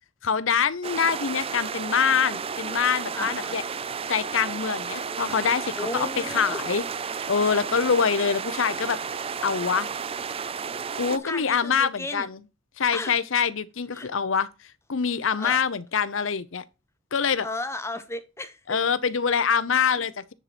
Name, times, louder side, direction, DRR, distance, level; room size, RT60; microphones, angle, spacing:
voice 1, 0.2-3.6 4.1-6.8 7.3-9.0 9.4-9.9 11.0-12.4 12.8-14.5 14.9-16.6 17.1-17.5 18.7-20.3, left 6 dB, 80° left, 0.8 m, -25 dB
sound 1, 0.8-11.2, right 6 dB, 30° right, 0.4 m, -32 dB
voice 2, 3.1-3.6 5.8-6.6 11.1-12.3 12.9-13.2 13.9-14.1 15.4-15.6 17.4-18.8, left 2 dB, 15° left, 1.0 m, -34 dB
9.9 x 4.3 x 4.3 m
head